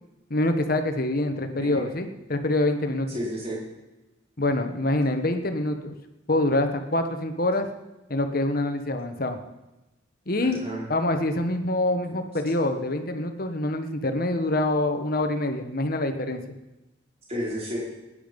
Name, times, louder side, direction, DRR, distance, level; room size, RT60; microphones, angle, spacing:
voice 1, 0.3-3.1 4.4-5.9 6.3-7.7 8.1-9.4 10.3-10.6 10.9-16.5, left 1 dB, 50° left, 7 dB, 1.3 m, -25 dB
voice 2, 1.3-1.9 3.1-3.7 10.4-10.9 17.3-17.8, equal, 30° right, -5 dB, 4.6 m, -32 dB
18.5 x 10.0 x 5.3 m, 1.0 s
head